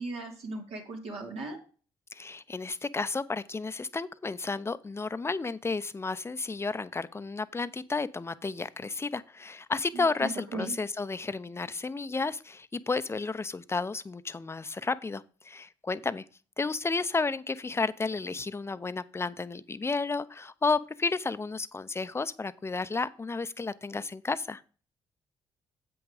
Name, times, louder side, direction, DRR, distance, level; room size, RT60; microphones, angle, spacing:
voice 1, 0.0-1.6 9.9-10.7, right 2 dB, 70° right, 0 dB, 2.9 m, -37 dB
voice 2, 2.1-16.2 16.6-24.6, left 4 dB, 25° left, 15 dB, 0.7 m, -32 dB
8.0 x 6.1 x 4.9 m, 0.38 s
supercardioid pair, 60°, 11 cm